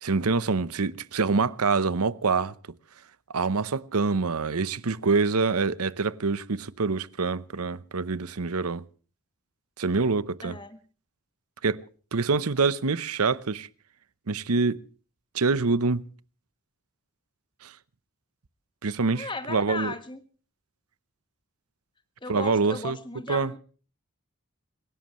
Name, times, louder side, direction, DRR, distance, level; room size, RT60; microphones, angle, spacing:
voice 1, 0.0-2.5 3.3-8.8 9.8-10.6 11.6-11.8 12.1-13.7 14.3-14.8 15.3-16.0 17.6-17.7 18.8-19.9 22.3-23.0 23.3-23.5, right 4 dB, 90° right, 0.8 m, -25 dB
voice 2, 10.4-10.8 19.1-20.2 22.2-23.6, left 3 dB, 20° left, 1.5 m, -36 dB
27.0 x 17.0 x 3.1 m
head